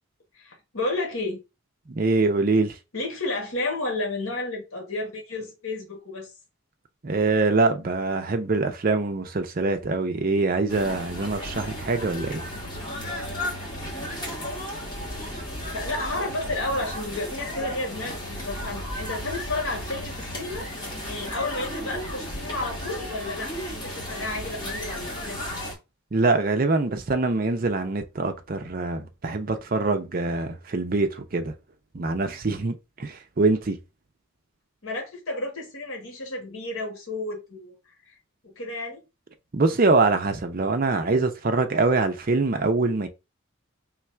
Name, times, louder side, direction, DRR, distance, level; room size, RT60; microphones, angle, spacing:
voice 1, 0.4-1.4 2.9-6.3 15.7-20.7 21.1-25.4 34.8-37.8 38.4-39.0, left 2 dB, 80° left, 1.5 m, -32 dB
voice 2, 2.0-2.7 7.0-12.4 26.1-31.5 31.9-32.7 33.0-33.8 39.5-43.1, right 3 dB, 45° right, 0.5 m, -24 dB
sound 1, 10.7-25.7, left 1 dB, 20° left, 1.3 m, -34 dB
3.2 x 2.4 x 4.3 m
head